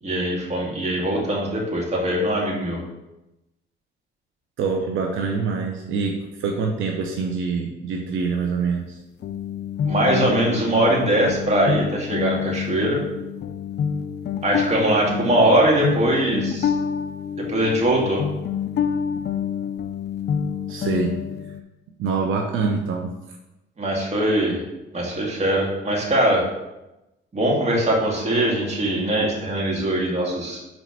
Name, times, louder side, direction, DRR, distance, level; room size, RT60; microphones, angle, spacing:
voice 1, 0.0-2.8 9.8-13.0 14.4-16.7 17.4-18.2 23.8-24.6 24.9-26.4 27.3-30.6, right 1 dB, 35° right, -2 dB, 2.3 m, -21 dB
voice 2, 4.6-9.0 20.7-21.2 22.0-23.1, right 5 dB, 80° right, 1 dB, 0.9 m, -25 dB
sound 1, 9.2-21.6, left 7 dB, 55° left, 0.5 m, -27 dB
6.2 x 4.0 x 6.0 m, 0.97 s
cardioid pair, 90°, 20 cm